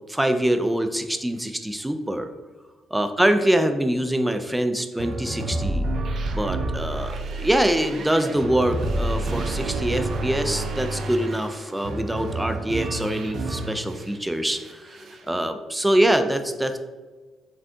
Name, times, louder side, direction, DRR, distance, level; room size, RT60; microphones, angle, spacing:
voice 1, 0.1-2.3 2.9-5.8 6.3-15.0 15.3-16.8, right 1 dB, 10° right, 8 dB, 0.4 m, -24 dB
sound 1, 5.0-14.1 14.5-15.3, right 2 dB, 60° right, 0.6 m, -29 dB
5.1 x 3.3 x 2.7 m, 1.3 s
cardioid pair, 90°, 0 cm